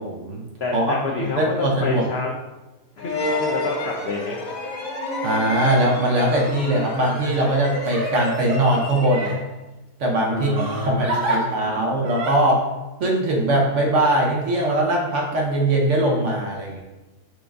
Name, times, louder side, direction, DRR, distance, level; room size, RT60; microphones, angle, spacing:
voice 1, 0.0-0.4 0.7-1.0 1.4-2.0 5.2-9.3 10.0-10.5 10.8-12.6 13.0-16.8, right 1 dB, 55° right, -1 dB, 0.9 m, -21 dB
voice 2, 0.6-2.3 3.0-4.4 10.3-11.9, left 3 dB, 75° left, -2 dB, 0.5 m, -29 dB
sound 1, 3.0-9.5, left 1 dB, 60° left, 1.2 m, -30 dB
Crying sobbing, 5.1-5.4 6.1-6.2 7.2-9.4 10.6-11.4 12.0-12.3, right 2 dB, 75° right, 1.3 m, -29 dB
6.1 x 2.6 x 3.4 m, 1.1 s
omnidirectional pair, 1.8 m